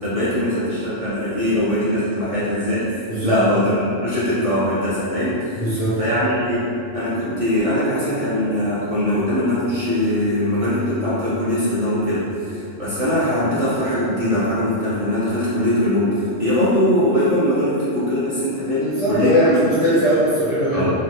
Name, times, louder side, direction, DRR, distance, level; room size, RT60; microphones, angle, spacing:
voice 1, 0.0-5.6 6.0-6.7 6.9-19.6 20.7-20.9, left 1 dB, 40° right, -12 dB, 0.5 m, -21 dB
voice 2, 3.1-3.4 5.6-6.0 18.8-20.9, equal, 45° left, -11 dB, 0.5 m, -20 dB
3.2 x 2.1 x 2.7 m, 2.6 s
omnidirectional pair, 1.2 m